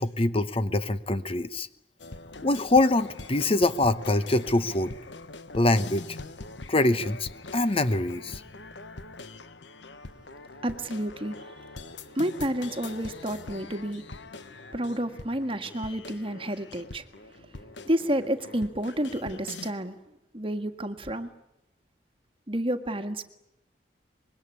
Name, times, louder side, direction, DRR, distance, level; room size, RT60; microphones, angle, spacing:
voice 1, 0.0-1.7 2.4-4.9 5.5-6.2 6.7-8.4, left 2 dB, 35° left, 13 dB, 0.9 m, -24 dB
sound 1, 2.0-19.7, left 3 dB, 90° left, 1.3 m, -43 dB
voice 2, 10.6-11.5 12.1-14.0 14.7-17.1 17.9-19.9 20.3-21.3 22.5-23.2, right 1 dB, 30° right, 8 dB, 1.7 m, -30 dB
25.0 x 22.0 x 9.9 m, 0.86 s
head